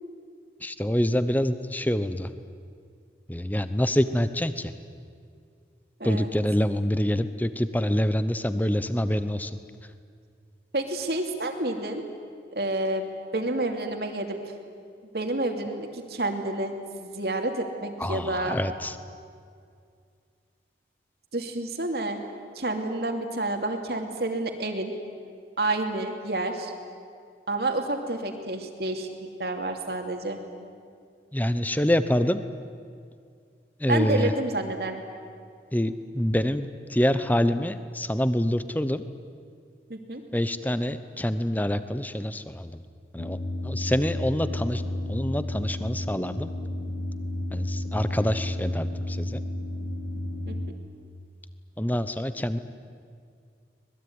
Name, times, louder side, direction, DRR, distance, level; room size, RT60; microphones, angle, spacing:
voice 1, 0.6-2.3 3.3-4.7 6.0-9.5 18.0-19.0 31.3-32.4 33.8-34.3 35.7-39.0 40.3-42.8 43.1-44.8 45.1-46.5 47.5-49.4 51.8-52.6, equal, 10° left, 12 dB, 0.9 m, -26 dB
voice 2, 10.7-12.0 12.5-13.1 13.3-14.4 15.1-16.7 17.0-18.6 21.3-22.2 22.5-24.9 25.6-26.7 27.5-29.1 29.4-30.4 33.9-35.0 39.9-40.2 50.5-50.6, right 2 dB, 60° right, 4 dB, 2.9 m, -29 dB
sound 1, 43.2-50.7, left 1 dB, 85° left, 1.9 m, -32 dB
25.5 x 20.5 x 9.7 m, 2.2 s
head